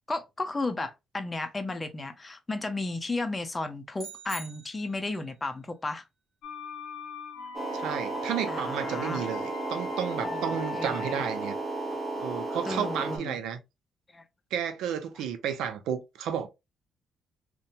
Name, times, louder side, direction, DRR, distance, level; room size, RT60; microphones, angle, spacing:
voice 1, 0.1-6.1 8.5-9.3 10.2-10.4 10.7-11.2 12.3-13.4 14.1-14.2, left 2 dB, 20° left, 0.6 m, -34 dB
sound 1, 3.9-5.3, right 3 dB, 50° right, 1.1 m, -44 dB
sound 2, 6.4-11.5, left 5 dB, 75° left, 0.5 m, -41 dB
sound 3, 7.5-13.2, right 2 dB, 25° right, 0.7 m, -34 dB
voice 2, 7.7-11.6 12.2-13.6 14.5-16.5, right 8 dB, 85° right, 0.5 m, -32 dB
2.7 x 2.2 x 2.6 m
cardioid pair, 90°, 0 cm